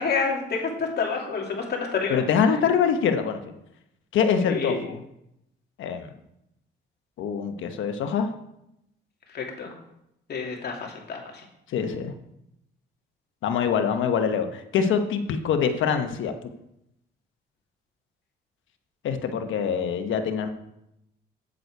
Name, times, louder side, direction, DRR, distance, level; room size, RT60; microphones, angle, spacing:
voice 1, 0.0-2.2 4.4-4.8 9.3-9.7 10.3-11.2, left 5 dB, 55° left, 0 dB, 2.5 m, -28 dB
voice 2, 2.1-3.4 4.1-5.0 5.8-6.1 7.2-8.3 11.7-12.1 13.4-16.3 19.0-20.5, left 7 dB, 80° left, 7 dB, 1.1 m, -24 dB
8.1 x 7.7 x 4.6 m, 0.81 s
cardioid pair, 90°, 20 cm